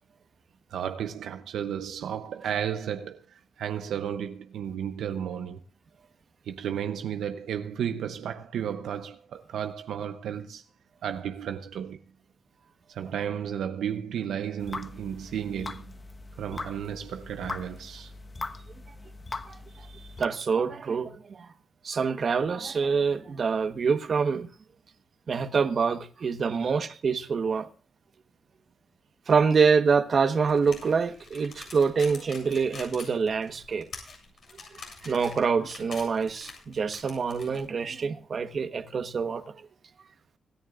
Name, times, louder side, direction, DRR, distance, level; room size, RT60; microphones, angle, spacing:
voice 1, 0.7-5.6 6.4-10.6 11.0-12.0 12.9-16.0 16.4-18.1 19.7-20.2 26.4-26.7, right 9 dB, 85° right, 0.7 m, -33 dB
sound 1, 14.6-20.3, left 3 dB, 35° left, 1.2 m, -40 dB
voice 2, 20.2-21.5 21.8-24.5 25.3-27.7 29.3-33.9 34.7-39.5, right 5 dB, 60° right, 1.3 m, -26 dB
sound 2, 30.5-37.6, left 4 dB, 70° left, 7.4 m, -45 dB
25.5 x 10.5 x 2.5 m
cardioid pair, 65°, 0 cm